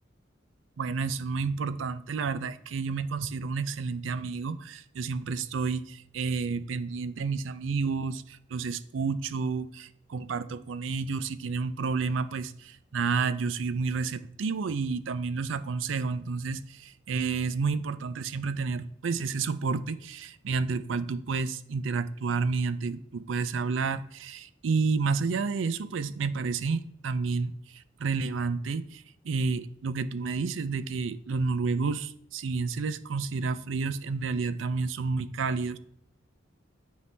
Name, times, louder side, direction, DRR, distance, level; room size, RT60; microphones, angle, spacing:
voice 1, 0.8-35.8, right 4 dB, 75° right, 0.4 m, -30 dB
8.3 x 4.6 x 3.3 m
head